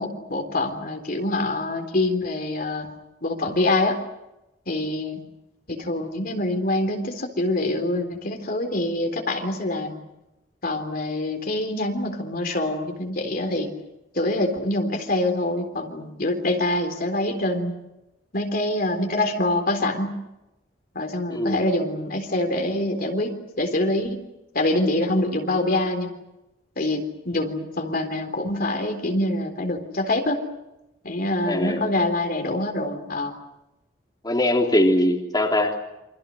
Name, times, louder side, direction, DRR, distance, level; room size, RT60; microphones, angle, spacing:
voice 1, 0.0-2.9 3.2-4.0 4.7-5.2 5.7-9.9 10.6-13.7 14.1-17.8 18.3-20.2 21.0-24.2 24.5-26.1 26.8-30.4 31.0-33.3, left 1 dB, 55° left, 4 dB, 3.8 m, -25 dB
voice 2, 31.5-31.9 34.2-35.7, left 1 dB, 25° left, 0 dB, 3.5 m, -21 dB
29.0 x 26.0 x 6.5 m, 0.94 s
head